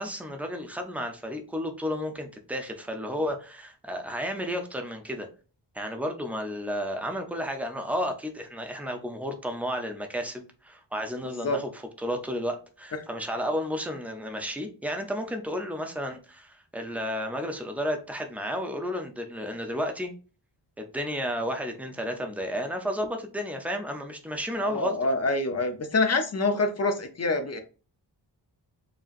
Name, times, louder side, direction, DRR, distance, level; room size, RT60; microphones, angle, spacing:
voice 1, 0.0-5.3 5.7-20.1 20.8-25.0, equal, 5° right, 0.5 m, -32 dB
voice 2, 24.6-27.6, left 2 dB, 35° left, 0.7 m, -26 dB
4.9 x 2.9 x 2.5 m
wide cardioid pair, 170°, 44 cm